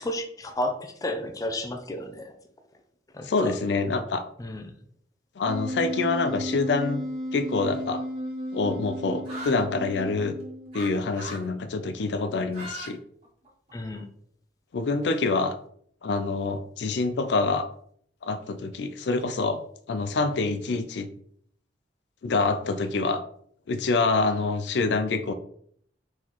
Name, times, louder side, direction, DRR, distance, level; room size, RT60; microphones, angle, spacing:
voice 1, 0.0-2.3 3.1-3.6 4.4-4.7 13.7-14.1, left 1 dB, 20° left, 5 dB, 0.5 m, -32 dB
voice 2, 3.2-4.2 5.4-7.0 7.3-8.0 8.5-10.4 10.7-13.0 14.7-15.5 16.0-17.7 18.2-19.6 19.9-21.1 22.2-23.2 23.7-25.3, left 3 dB, 75° left, 9 dB, 0.4 m, -26 dB
Wind instrument woodwind instrument, 5.5-10.9, equal, 55° right, 1.2 m, -34 dB
sound 1, 9.3-9.6 10.7-10.9 11.1-11.5 12.4-12.9 13.2-14.0, right 1 dB, 35° right, 1.5 m, -38 dB
4.1 x 3.9 x 3.0 m, 0.63 s
head